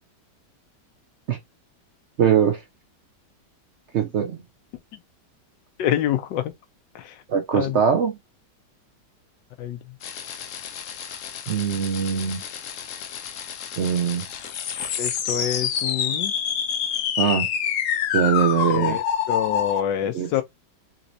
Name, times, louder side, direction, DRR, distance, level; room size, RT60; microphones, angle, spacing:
voice 1, 2.2-2.6 3.9-4.4 7.3-8.2 11.5-12.4 13.8-14.3 17.2-17.5 18.1-19.0 20.1-20.4, right 7 dB, 75° right, 0.6 m, -22 dB
voice 2, 5.8-6.5 6.9-7.2 7.5-7.8 9.6-10.0 15.0-16.3 18.7-20.4, left 11 dB, 85° left, 1.3 m, -27 dB
sound 1, 10.0-19.8, left 8 dB, 65° left, 0.8 m, -28 dB
3.9 x 3.0 x 2.6 m
omnidirectional pair, 1.9 m